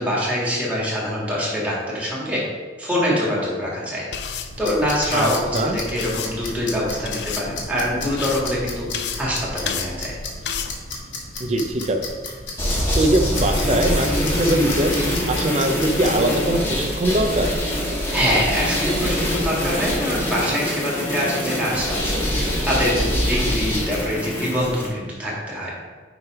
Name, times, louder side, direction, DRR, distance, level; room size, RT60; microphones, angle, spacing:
voice 1, 0.0-2.4 2.8-4.1 4.6-10.2 18.1-25.7, equal, 5° right, -6 dB, 1.9 m, -24 dB
sound 1, 4.1-10.7, left 6 dB, 65° left, 0.5 m, -32 dB
sound 2, 4.5-16.2, left 3 dB, 90° left, 1.6 m, -35 dB
voice 2, 5.1-5.8 11.4-12.1 12.9-14.9 15.3-17.6, right 1 dB, 35° right, 5 dB, 0.6 m, -22 dB
sound 3, 12.6-24.9, equal, 15° left, 1.3 m, -24 dB
9.9 x 3.4 x 4.8 m, 1.5 s
head